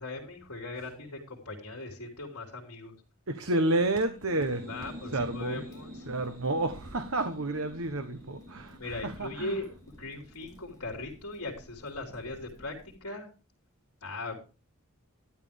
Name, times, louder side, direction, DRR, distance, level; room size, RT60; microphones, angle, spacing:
voice 1, 0.0-3.0 4.7-6.0 8.7-9.7 10.0-13.3 14.0-14.4, left 2 dB, 80° left, 0 dB, 3.3 m, -39 dB
voice 2, 3.3-4.7 5.1-5.7 6.1-9.6, right 2 dB, 65° right, 8 dB, 1.2 m, -30 dB
Crackle, 3.7-12.9, equal, 15° left, 2.4 m, -58 dB
sound 1, 4.1-11.7, equal, 40° right, 5.6 m, -48 dB
12.5 x 11.0 x 3.6 m, 0.33 s
head